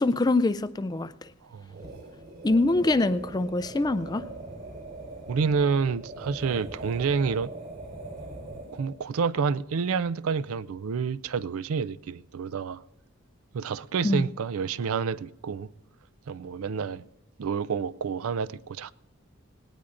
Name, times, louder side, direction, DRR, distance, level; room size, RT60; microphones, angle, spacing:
voice 1, 0.0-1.3 2.4-4.2 14.0-14.2, left 2 dB, 20° left, 0.3 m, -24 dB
voice 2, 1.4-1.9 5.3-7.5 8.7-12.8 13.5-15.7 16.3-17.0 17.4-18.9, right 5 dB, 75° right, 0.4 m, -29 dB
sound 1, 1.7-9.0, right 2 dB, 45° right, 4.4 m, -41 dB
19.5 x 18.0 x 2.5 m
head